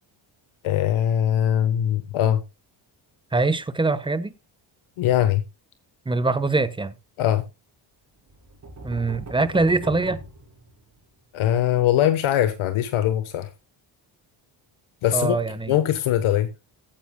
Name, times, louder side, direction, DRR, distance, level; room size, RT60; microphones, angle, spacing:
voice 1, 0.6-2.4 5.0-5.4 7.2-7.4 11.3-13.5 15.0-15.4 15.7-16.5, left 11 dB, 80° left, 1.3 m, -21 dB
voice 2, 3.3-4.3 6.1-6.9 8.8-10.2 15.1-15.7, right 3 dB, 10° right, 1.0 m, -23 dB
sound 1, 8.3-11.2, right 2 dB, 35° right, 3.7 m, -39 dB
15.5 x 8.8 x 2.3 m
cardioid pair, 85°, 48 cm